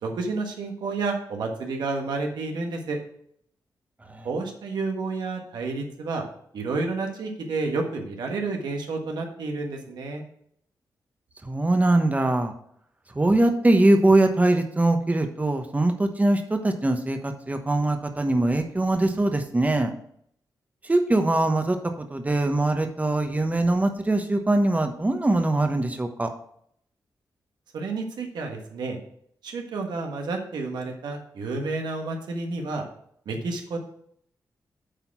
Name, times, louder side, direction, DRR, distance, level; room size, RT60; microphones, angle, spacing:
voice 1, 0.0-3.0 4.2-6.2 6.5-10.2 27.7-29.0 29.4-32.8 33.2-33.8, right 3 dB, 85° right, 2 dB, 1.4 m, -30 dB
voice 2, 11.4-12.5 13.1-19.9 20.8-26.3, right 2 dB, 20° right, 6 dB, 1.1 m, -22 dB
8.1 x 4.3 x 5.9 m, 0.67 s
cardioid pair, 60°, 7 cm